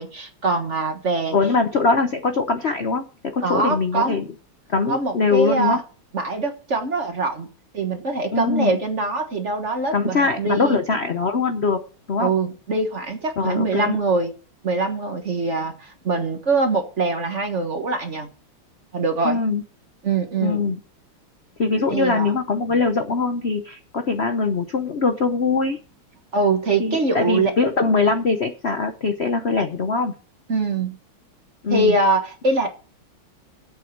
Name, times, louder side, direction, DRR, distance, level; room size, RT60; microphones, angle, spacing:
voice 1, 0.0-1.3 3.4-4.2 4.9-5.8 6.1-7.5 7.7-10.8 12.2-14.3 14.6-18.3 18.9-19.4 20.0-20.6 21.9-22.3 26.3-27.5 30.5-31.0 31.7-32.7, right 3 dB, 40° right, 6 dB, 1.5 m, -23 dB
voice 2, 1.3-4.3 4.7-5.8 8.3-8.8 9.9-11.8 12.1-12.3 13.4-14.0 19.2-19.6 20.4-20.8 21.6-25.8 26.8-30.1 31.6-32.0, left 4 dB, 50° left, 7 dB, 0.8 m, -22 dB
8.6 x 8.3 x 7.9 m, 0.38 s
omnidirectional pair, 2.3 m